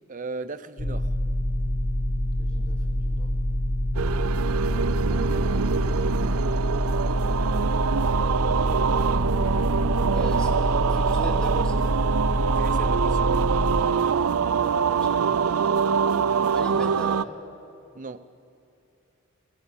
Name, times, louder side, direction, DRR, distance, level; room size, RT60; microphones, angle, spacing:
voice 1, 0.1-1.1 12.5-13.4 17.9-18.2, right 3 dB, 40° right, 0.7 m, -36 dB
sound 1, 0.8-13.8, left 1 dB, 35° left, 1.0 m, -26 dB
voice 2, 2.4-3.3 5.1-5.9 8.5-8.6 10.1-11.9 14.4-15.8 16.5-17.4, equal, 5° left, 3.1 m, -40 dB
sound 2, 4.0-17.2, right 6 dB, 85° right, 0.4 m, -24 dB
22.0 x 17.0 x 8.7 m
head